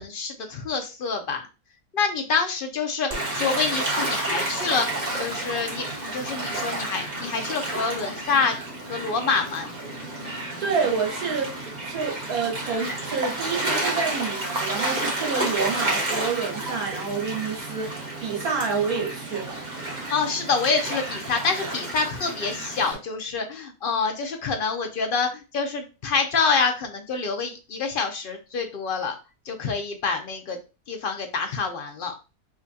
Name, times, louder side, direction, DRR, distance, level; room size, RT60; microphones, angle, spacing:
voice 1, 0.0-1.4 1.9-8.6 8.9-9.7 20.1-29.1 29.5-30.6 30.9-32.1, left 5 dB, 55° left, 0.6 m, -27 dB
Gull seagull / Waves surf, 3.1-22.9, right 2 dB, 35° right, 1.1 m, -30 dB
voice 2, 10.6-19.6, right 5 dB, 75° right, 1.5 m, -28 dB
4.9 x 2.2 x 2.6 m
omnidirectional pair, 1.5 m